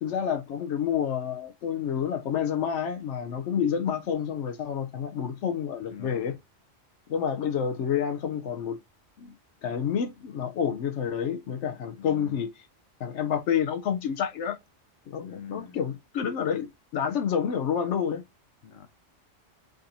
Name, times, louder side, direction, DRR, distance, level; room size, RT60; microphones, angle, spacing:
voice 1, 0.0-6.4 7.1-8.8 9.2-9.4 9.6-12.6 13.0-14.6 15.1-18.2, left 8 dB, 75° left, 0.9 m, -29 dB
voice 2, 5.8-6.3 11.9-12.4 15.3-15.8 18.6-18.9, left 8 dB, 90° left, 1.3 m, -43 dB
7.6 x 2.6 x 2.7 m
omnidirectional pair, 1.2 m